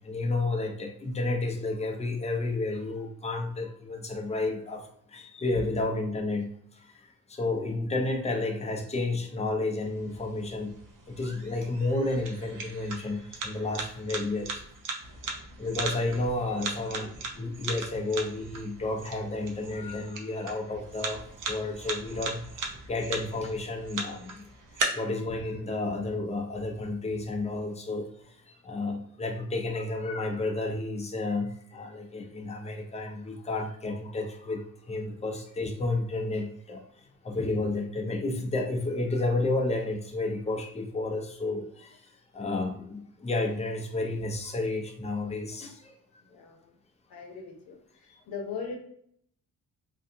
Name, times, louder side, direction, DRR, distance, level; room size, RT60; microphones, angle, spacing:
voice 1, 0.0-4.8 5.1-10.7 11.1-14.6 15.6-17.1 17.4-22.4 22.9-24.4 24.9-36.8 37.2-45.9 48.1-48.2, left 2 dB, 20° left, 2 dB, 0.6 m, -31 dB
sound 1, 9.8-24.8, right 4 dB, 60° right, 0.7 m, -39 dB
voice 2, 16.6-17.1 18.1-18.2 46.2-46.7 47.1-48.8, left 5 dB, 90° left, 2 dB, 0.8 m, -40 dB
2.6 x 2.3 x 2.6 m, 0.66 s
cardioid pair, 65°, 36 cm